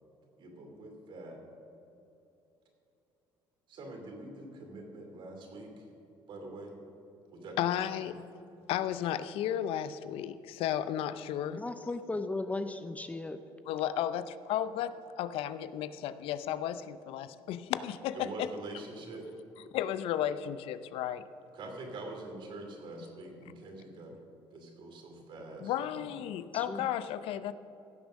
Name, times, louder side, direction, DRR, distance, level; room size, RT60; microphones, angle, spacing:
voice 1, 0.4-1.4 3.7-5.9 6.3-6.8 7.3-7.9 18.1-19.3 21.5-24.1 24.5-26.1, right 2 dB, 60° right, 2 dB, 2.8 m, -45 dB
voice 2, 7.6-8.2 8.7-11.6 13.7-18.5 19.7-21.2 25.6-27.5, left 11 dB, 75° left, 13 dB, 0.5 m, -33 dB
voice 3, 11.6-13.4 26.5-26.9, left 2 dB, 15° left, 9 dB, 0.5 m, -36 dB
16.0 x 7.0 x 6.3 m, 2.9 s
cardioid pair, 110°, 10 cm